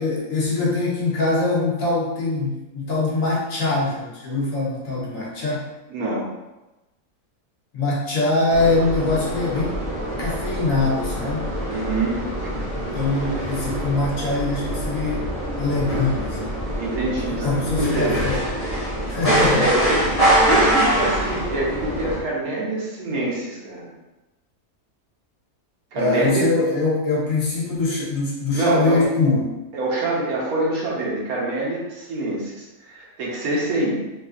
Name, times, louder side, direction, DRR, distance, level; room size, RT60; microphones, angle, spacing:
voice 1, 0.0-5.7 7.7-9.8 10.2-11.5 12.8-15.3 15.6-16.5 17.3-18.4 19.1-19.7 26.0-29.6, left 3 dB, 70° left, -6 dB, 1.2 m, -23 dB
voice 2, 5.9-6.3 11.7-12.6 16.3-16.5 16.8-18.2 19.2-23.9 25.9-26.5 28.5-29.0 29.7-34.0, right 2 dB, 85° right, -4 dB, 1.3 m, -25 dB
sound 1, 8.5-22.2, right 1 dB, 10° left, 0.9 m, -24 dB
3.5 x 2.4 x 2.4 m, 1.0 s
omnidirectional pair, 1.5 m